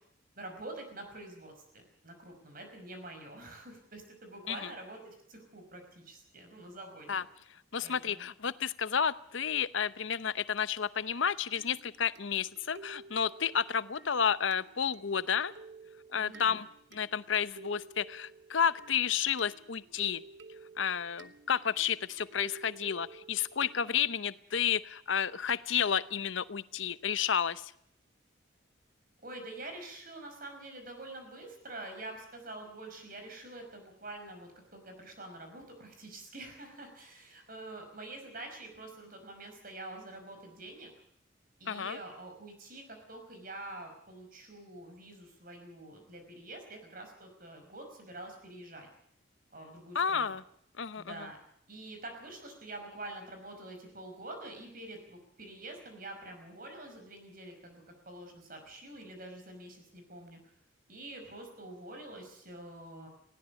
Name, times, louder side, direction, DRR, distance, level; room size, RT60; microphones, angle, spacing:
voice 1, 0.4-7.2 7.8-8.3 16.1-16.6 29.2-40.9 41.6-48.9 49.5-50.4 51.0-51.4 51.7-60.4 60.9-63.1, right 2 dB, 45° right, 5 dB, 5.4 m, -46 dB
voice 2, 7.7-15.5 16.1-16.7 16.9-20.2 20.8-27.7 41.7-42.0 49.9-50.4 50.8-51.3, left 7 dB, 70° left, 16 dB, 0.8 m, -31 dB
sound 1, 11.6-24.3, right 3 dB, 60° right, 1.1 m, -53 dB
19.5 x 17.5 x 8.2 m, 0.68 s
head